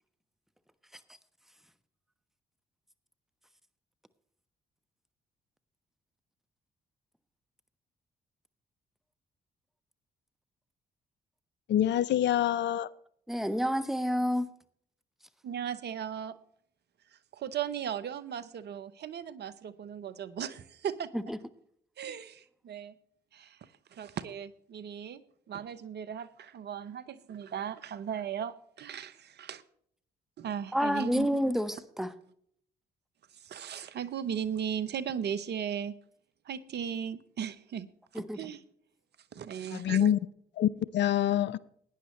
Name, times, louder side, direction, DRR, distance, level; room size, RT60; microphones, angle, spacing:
voice 1, 11.7-12.9 39.7-40.2 40.6-41.6, left 11 dB, 65° left, 0.5 m, -26 dB
voice 2, 13.3-14.5 21.1-21.4 30.7-32.1 38.1-38.4, equal, ahead, 1.1 m, -29 dB
voice 3, 15.4-16.3 17.3-21.1 22.0-22.9 23.3-23.6 23.9-25.2 25.5-29.6 30.4-31.3 33.4-35.9 36.5-37.9 38.1-38.6 39.3-40.1, right 8 dB, 60° right, 0.9 m, -37 dB
17.0 x 10.0 x 3.2 m
hypercardioid pair, 50°, 20 cm